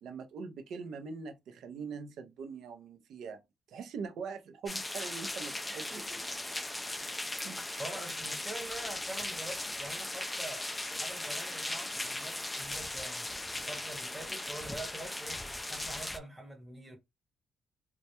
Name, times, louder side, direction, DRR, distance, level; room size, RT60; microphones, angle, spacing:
voice 1, 0.0-3.4 3.7-6.0 7.4-7.6, right 5 dB, 75° right, 0.5 m, -42 dB
sound 1, 4.6-16.2, left 1 dB, 10° left, 0.3 m, -38 dB
voice 2, 5.7-6.4 6.9-7.3 7.8-10.7 11.0-13.4 13.7-17.0, right 1 dB, 10° right, 0.8 m, -45 dB
2.2 x 2.1 x 2.8 m
cardioid pair, 90°, 0 cm